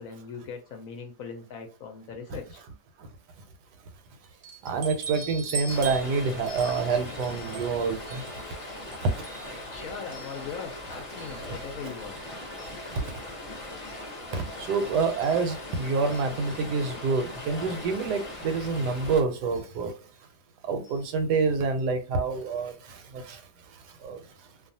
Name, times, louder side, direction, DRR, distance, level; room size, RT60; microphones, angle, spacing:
voice 1, 0.0-2.6 9.7-12.2, left 6 dB, 70° left, 4 dB, 0.9 m, -40 dB
sound 1, 4.4-10.8 11.2-12.2 12.6-13.2 13.8-14.0 14.3-14.4 14.8-16.8 17.8-17.9 18.3-18.4 19.5-19.7 20.8-21.1 21.4-21.5 21.8-21.9, right 4 dB, 45° right, 0.7 m, -43 dB
voice 2, 4.6-8.2 14.3-14.4 14.7-19.9 20.7-22.7 23.3-23.4 24.0-24.2, right 4 dB, 85° right, 7 dB, 1.2 m, -27 dB
Stream, 5.7-19.2, left 1 dB, 30° left, 0.6 m, -40 dB
2.5 x 2.3 x 2.6 m, 0.37 s
omnidirectional pair, 1.7 m